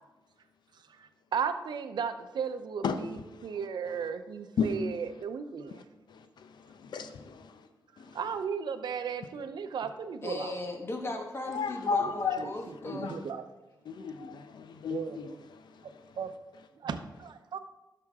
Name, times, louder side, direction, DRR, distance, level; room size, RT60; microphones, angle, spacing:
voice 1, 1.0-5.8 8.1-10.5 12.0-12.1 12.4-12.5 12.9-13.5 14.9-15.3 16.2-16.3 16.8-17.6, right 6 dB, 85° right, 0.6 m, -35 dB
voice 2, 2.8-3.6 4.6-4.7 5.7-5.8 6.1-7.7 8.0-8.2 11.5-12.4 12.8-13.3 13.8-16.1, left 5 dB, 85° left, 0.6 m, -34 dB
voice 3, 10.2-13.2, left 2 dB, 35° left, 1.4 m, -37 dB
12.0 x 5.9 x 3.6 m
wide cardioid pair, 100°, 7 cm